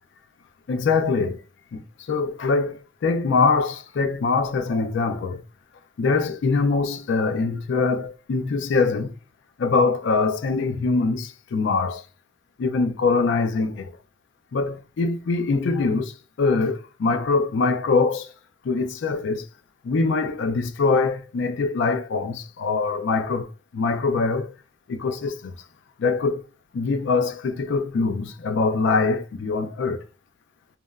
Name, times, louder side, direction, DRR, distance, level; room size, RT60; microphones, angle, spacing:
voice 1, 0.7-1.4 1.7-1.8 2.1-5.4 6.0-9.1 9.6-12.0 12.6-13.9 14.5-18.3 18.6-19.4 19.8-23.5 23.7-24.5 24.9-25.5 26.0-26.4 26.7-30.0, left 4 dB, 70° left, 0.4 m, -23 dB
2.9 x 2.1 x 2.3 m
head